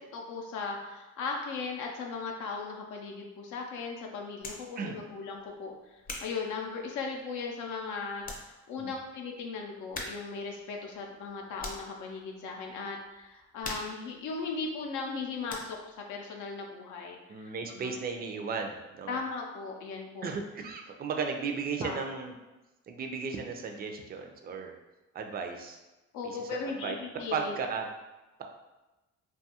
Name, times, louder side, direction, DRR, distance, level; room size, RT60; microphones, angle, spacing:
voice 1, 0.1-5.7 6.2-17.9 19.1-20.3 21.8-22.0 26.1-27.5, left 4 dB, 80° left, 1 dB, 0.5 m, -37 dB
sound 1, 4.4-4.7 5.3-7.3 7.8-7.9 8.2-8.5 8.8-8.9 9.9-10.4 10.7-12.0 12.5-12.8 13.0-15.2 15.5-16.0, left 2 dB, 30° left, 0.6 m, -43 dB
voice 2, 17.3-19.2 20.2-22.4 22.9-24.7 25.1-25.8 26.2-27.0 27.3-27.9, right 5 dB, 30° right, 3 dB, 0.4 m, -35 dB
2.6 x 2.3 x 2.8 m, 1.1 s
cardioid pair, 90°, 30 cm